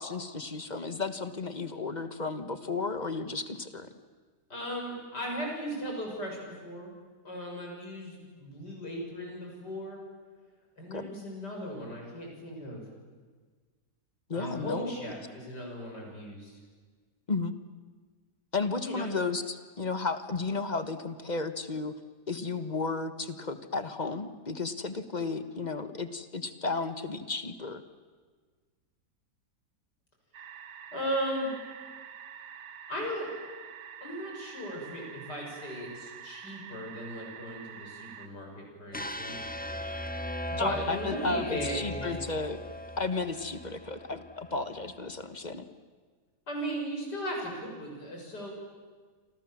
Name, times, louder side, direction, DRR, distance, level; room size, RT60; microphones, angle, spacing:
voice 1, 0.0-3.9 10.9-11.1 14.3-14.9 17.3-17.5 18.5-21.9 22.3-27.8 40.6-42.6 43.0-45.7, left 3 dB, 30° left, 10 dB, 1.4 m, -33 dB
voice 2, 4.5-6.9 7.2-10.0 10.8-12.8 14.3-16.6 18.8-19.1 30.9-31.5 32.9-33.3 34.0-39.4 40.5-42.2 46.5-48.5, equal, 80° left, 0 dB, 7.7 m, -37 dB
sound 1, 30.3-38.3, right 8 dB, 80° right, 1.7 m, -47 dB
sound 2, 38.9-45.0, left 1 dB, 5° left, 0.9 m, -39 dB
29.5 x 26.0 x 7.5 m, 1.5 s
omnidirectional pair, 1.8 m